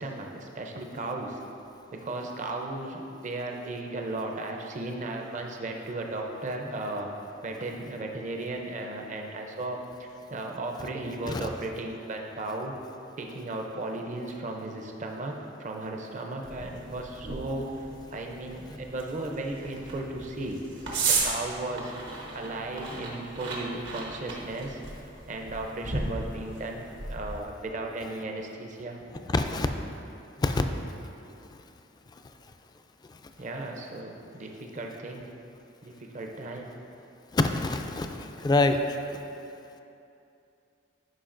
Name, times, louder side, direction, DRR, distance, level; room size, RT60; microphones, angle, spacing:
voice 1, 0.0-1.4 1.9-7.1 7.4-12.7 13.2-15.3 15.6-20.9 21.2-21.9 22.3-24.8 25.3-29.0 33.4-35.3 35.8-36.7, right 2 dB, 40° right, 2 dB, 0.6 m, -35 dB
sound 1, 16.4-27.4, right 3 dB, 80° right, 1.2 m, -35 dB
voice 2, 29.3-29.7 30.4-30.6 37.3-38.1 38.4-38.8, left 2 dB, 20° left, 7 dB, 0.3 m, -24 dB
11.5 x 5.2 x 2.5 m, 2.7 s
head